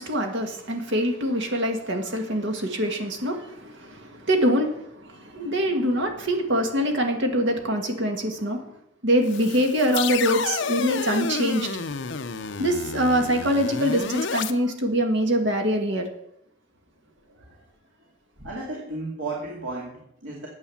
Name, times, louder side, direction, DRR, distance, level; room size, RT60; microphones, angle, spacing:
voice 1, 0.0-8.7 9.0-11.7 12.6-16.1, equal, 65° right, 3 dB, 1.9 m, -24 dB
sound 1, 9.2-14.5, left 5 dB, 65° left, 0.7 m, -30 dB
voice 2, 17.3-17.6 18.4-20.5, right 2 dB, 85° right, -3 dB, 2.3 m, -34 dB
9.7 x 8.1 x 7.1 m, 0.76 s
head